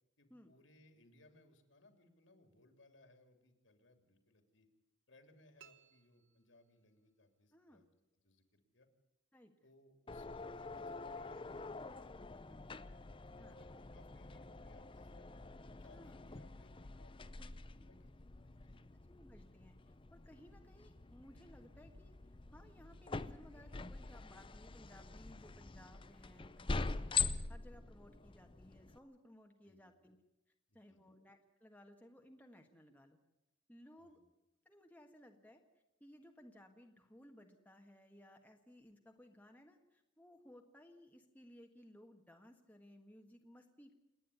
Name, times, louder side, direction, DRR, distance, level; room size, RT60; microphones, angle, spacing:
voice 1, 0.2-4.7 5.1-7.9 8.2-8.9 9.6-12.8 13.2-15.4 15.8-18.3 18.6-18.8 29.6-29.9 30.7-31.0 34.0-34.2, left 1 dB, 70° left, 7 dB, 3.1 m, -67 dB
sound 1, 5.6-7.1, right 9 dB, 70° right, 1.0 m, -65 dB
voice 2, 7.5-7.8 9.3-9.5 13.4-13.6 15.9-16.2 17.4-17.5 19.1-19.8 20.1-22.2 22.5-30.2 30.7-33.2 33.7-34.2 34.6-35.6 36.0-43.9, equal, 10° left, 2 dB, 1.5 m, -60 dB
sound 2, 10.1-29.0, left 4 dB, 25° left, 0.6 m, -45 dB
28.5 x 10.0 x 9.5 m, 0.94 s
head